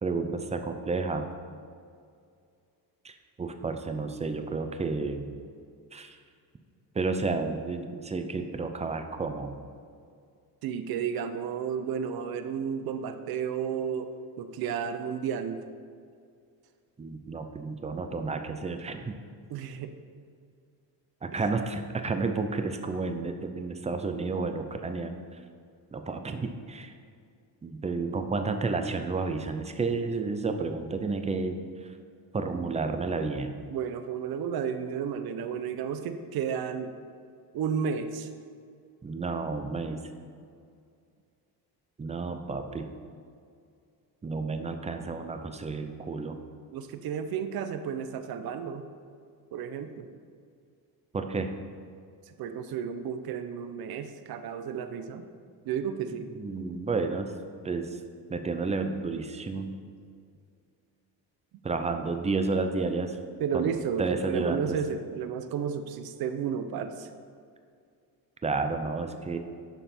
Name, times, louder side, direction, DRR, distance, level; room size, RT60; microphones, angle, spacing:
voice 1, 0.0-1.3 3.0-5.4 5.9-6.2 6.9-9.7 17.0-19.2 21.2-25.1 25.9-26.9 27.6-31.9 32.3-33.6 39.0-40.0 42.0-42.9 44.2-46.4 51.1-51.5 56.2-57.3 57.6-58.0 58.3-59.8 61.6-63.2 63.5-64.8 68.4-69.4, right 4 dB, 15° right, 6 dB, 0.6 m, -31 dB
voice 2, 10.6-14.1 14.4-15.6 19.5-19.9 33.7-36.9 37.5-38.3 46.7-48.9 49.5-50.1 52.3-55.3 55.7-56.3 63.4-67.1, right 7 dB, 65° right, 9 dB, 0.8 m, -32 dB
11.5 x 5.7 x 4.3 m, 2.3 s
cardioid pair, 140°, 40 cm